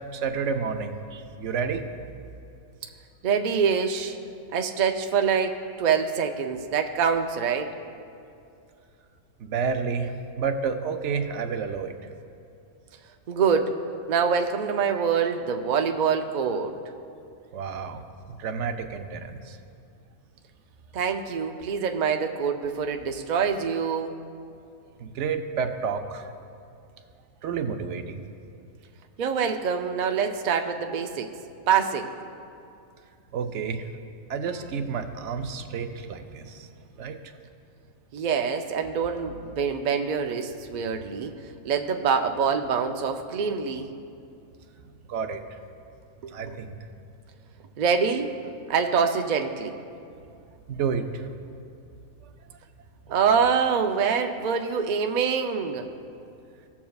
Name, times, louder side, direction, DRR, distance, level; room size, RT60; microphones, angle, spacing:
voice 1, 0.0-1.9 9.4-11.9 17.5-18.0 18.4-19.6 25.0-26.3 27.4-28.2 33.3-33.9 34.3-36.7 37.0-37.2 44.8-45.6 46.3-46.8 50.7-51.3 52.2-52.3, right 5 dB, 65° right, 7 dB, 0.8 m, -30 dB
voice 2, 3.2-4.2 4.5-7.7 13.3-13.7 14.1-16.7 20.9-24.2 29.2-31.3 31.7-32.1 38.1-41.3 41.6-43.9 46.2-46.6 47.8-48.3 48.7-49.7 53.1-55.9, right 6 dB, 80° right, 5 dB, 0.4 m, -25 dB
17.0 x 7.2 x 2.3 m, 2.5 s
omnidirectional pair, 1.4 m